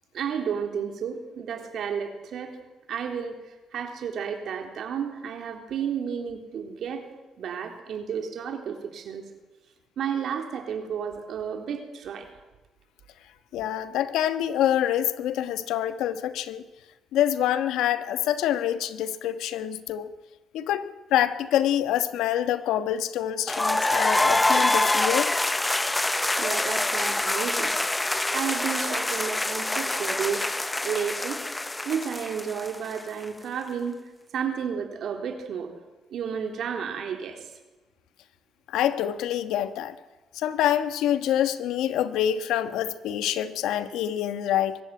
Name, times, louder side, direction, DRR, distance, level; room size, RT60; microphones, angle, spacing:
voice 1, 0.1-2.5 2.9-3.3 3.7-7.1 7.4-9.2 10.0-12.3 26.4-27.7 28.3-30.4 30.8-31.4 31.9-34.0 34.3-35.7 36.1-37.4, right 7 dB, 70° right, 4 dB, 3.7 m, -32 dB
voice 2, 13.5-16.6 17.1-20.1 20.5-25.3 38.7-39.9 40.3-44.8, left 11 dB, 90° left, 11 dB, 1.3 m, -26 dB
sound 1, 23.5-33.3, left 2 dB, 15° left, 0.7 m, -25 dB
23.0 x 14.0 x 9.5 m, 1.1 s
cardioid pair, 90°, 0 cm